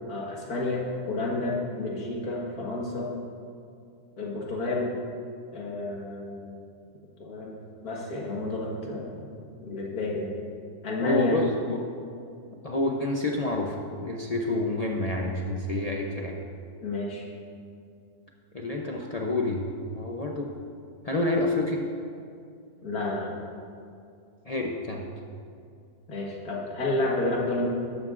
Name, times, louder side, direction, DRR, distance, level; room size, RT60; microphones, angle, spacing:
voice 1, 0.1-3.1 4.2-4.9 5.5-6.6 7.2-10.4 10.8-11.4 16.8-17.2 22.8-23.4 26.1-27.7, left 2 dB, 75° left, -3 dB, 2.1 m, -30 dB
voice 2, 11.0-11.8 12.6-16.3 18.5-19.6 19.9-20.5 21.0-21.8 24.5-25.1, left 2 dB, 50° left, 0 dB, 0.4 m, -28 dB
13.5 x 11.5 x 2.5 m, 2.4 s
omnidirectional pair, 1.6 m